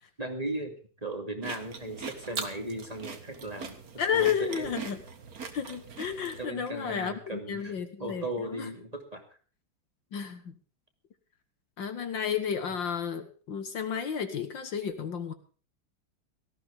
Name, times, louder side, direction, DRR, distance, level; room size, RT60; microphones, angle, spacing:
voice 1, 0.2-0.7 1.0-3.8 4.1-4.7 6.4-9.2, right 1 dB, 15° right, 4 dB, 2.5 m, -37 dB
sound 1, 1.4-6.4, right 5 dB, 45° right, 2.0 m, -41 dB
voice 2, 4.0-5.0 5.5-8.7 10.1-10.5 11.8-15.3, left 7 dB, 60° left, 10 dB, 2.0 m, -32 dB
18.5 x 15.0 x 3.6 m, 0.39 s
omnidirectional pair, 2.3 m